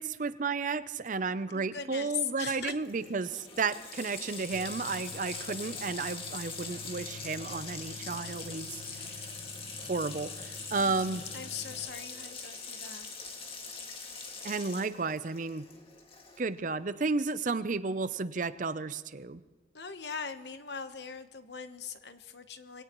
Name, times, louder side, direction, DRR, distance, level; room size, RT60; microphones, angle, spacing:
voice 1, 0.0-8.8 9.8-11.2 14.4-15.6 16.4-19.4, right 4 dB, 45° right, 14 dB, 0.6 m, -32 dB
voice 2, 1.5-2.7 10.8-13.1 19.7-22.8, left 7 dB, 65° left, 9 dB, 1.1 m, -40 dB
Water tap faucet, 2.5-2.6 2.8-16.6, left 4 dB, 30° left, 2.0 m, -43 dB
Tools, 4.5-11.8, left 4 dB, 90° left, 1.0 m, -49 dB
24.0 x 17.5 x 3.1 m, 1.3 s
head